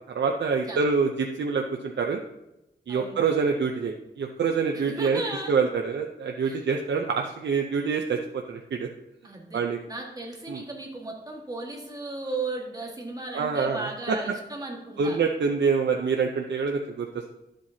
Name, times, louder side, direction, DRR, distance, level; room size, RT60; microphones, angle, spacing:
voice 1, 0.1-2.2 2.9-5.2 5.5-8.9 9.5-9.8 10.5-10.6 13.3-14.3 15.0-17.3, right 5 dB, 85° right, 3 dB, 0.6 m, -26 dB
voice 2, 2.9-3.2 4.7-5.5 6.5-6.6 9.2-9.6 9.9-15.2, right 2 dB, 20° right, -1 dB, 1.7 m, -35 dB
11.5 x 7.7 x 2.8 m, 0.92 s
wide cardioid pair, 155°, 18 cm